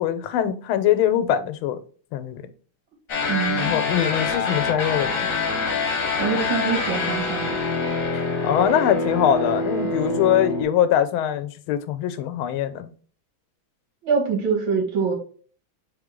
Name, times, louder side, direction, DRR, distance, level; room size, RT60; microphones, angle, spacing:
voice 1, 0.0-1.8 2.1-2.4 3.6-5.3 8.1-12.9, left 10 dB, 90° left, 1.4 m, -22 dB
sound 1, 3.1-10.6, left 3 dB, 50° left, 1.2 m, -25 dB
voice 2, 3.3-3.8 6.2-7.6 14.0-15.1, right 6 dB, 75° right, 2.1 m, -24 dB
3.7 x 3.4 x 3.6 m
omnidirectional pair, 2.2 m